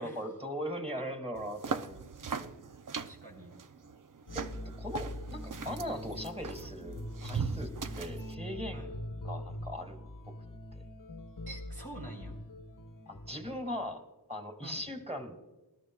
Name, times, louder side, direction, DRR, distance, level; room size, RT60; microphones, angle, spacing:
voice 1, 0.0-2.0 2.3-2.5 4.3-4.5 4.8-8.9 9.2-10.0 10.7-10.8 13.1-14.0 14.3-15.4, equal, 15° right, 5 dB, 1.8 m, -39 dB
sound 1, 1.4-8.3, right 6 dB, 50° right, 0.6 m, -40 dB
voice 2, 2.9-3.5 6.6-6.8 8.7-8.9 11.5-12.4 14.6-14.9, right 2 dB, 70° right, 0 dB, 3.6 m, -47 dB
sound 2, 4.3-13.8, left 1 dB, 50° left, 1.0 m, -43 dB
20.5 x 12.5 x 2.3 m, 1.1 s
wide cardioid pair, 45°, 41 cm